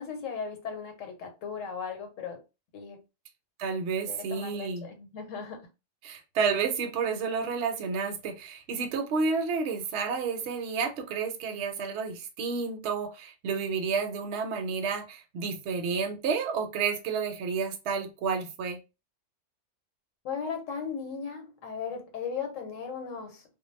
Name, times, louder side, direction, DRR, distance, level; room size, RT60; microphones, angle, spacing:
voice 1, 0.0-2.4 2.7-3.0 4.1-5.7 20.2-23.4, left 6 dB, 90° left, 1.1 m, -37 dB
voice 2, 3.6-4.9 6.0-18.8, right 5 dB, 65° right, 0.8 m, -30 dB
2.2 x 2.0 x 3.0 m
omnidirectional pair, 1.3 m